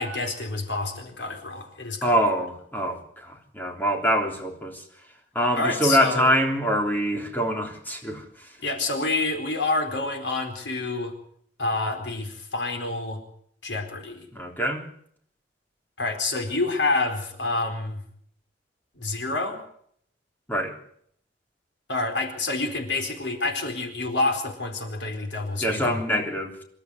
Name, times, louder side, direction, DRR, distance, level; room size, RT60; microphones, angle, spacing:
voice 1, 0.0-2.2 5.6-6.3 8.6-11.1 11.6-13.2 13.6-14.3 16.0-18.0 19.0-19.6 21.9-26.0, left 2 dB, 75° left, 4 dB, 4.4 m, -28 dB
voice 2, 2.0-4.8 5.4-8.5 14.3-14.8 20.5-20.8 25.6-26.6, equal, 10° left, 2 dB, 3.5 m, -25 dB
26.5 x 12.5 x 8.0 m, 0.66 s
head